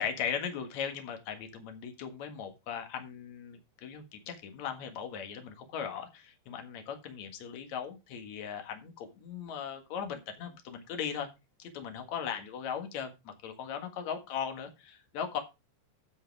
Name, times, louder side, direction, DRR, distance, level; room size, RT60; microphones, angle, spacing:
voice 1, 0.0-11.3 11.6-15.4, left 7 dB, 55° left, 6 dB, 2.3 m, -38 dB
13.0 x 8.0 x 3.5 m, 0.26 s
omnidirectional pair, 5.2 m